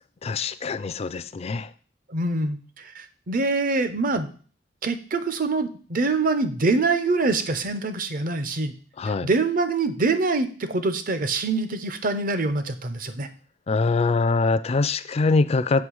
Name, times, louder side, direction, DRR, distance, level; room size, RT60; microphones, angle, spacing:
voice 1, 0.2-1.7 9.0-9.3 13.7-15.9, left 3 dB, 35° left, 14 dB, 0.4 m, -23 dB
voice 2, 2.1-4.3 4.8-8.7 9.2-13.3, right 3 dB, 50° right, 10 dB, 0.7 m, -25 dB
7.7 x 3.2 x 6.2 m, 0.41 s
head